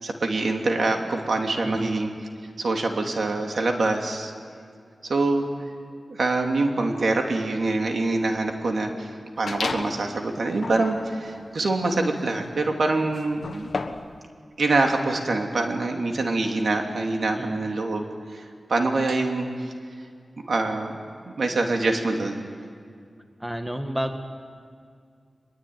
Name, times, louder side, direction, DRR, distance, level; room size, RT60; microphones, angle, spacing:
voice 1, 0.0-2.1 2.6-4.3 5.0-5.5 6.1-9.1 9.4-13.7 14.6-19.7 20.5-20.9 21.3-22.5, right 2 dB, 70° right, 3 dB, 2.8 m, -25 dB
voice 2, 1.6-2.0 17.3-17.6 23.4-24.2, right 1 dB, 10° right, 6 dB, 1.8 m, -31 dB
sound 1, 9.5-10.1 10.5-14.2, left 4 dB, 70° left, 1.4 m, -34 dB
24.0 x 21.5 x 9.5 m, 2.2 s
wide cardioid pair, 75°, 0 cm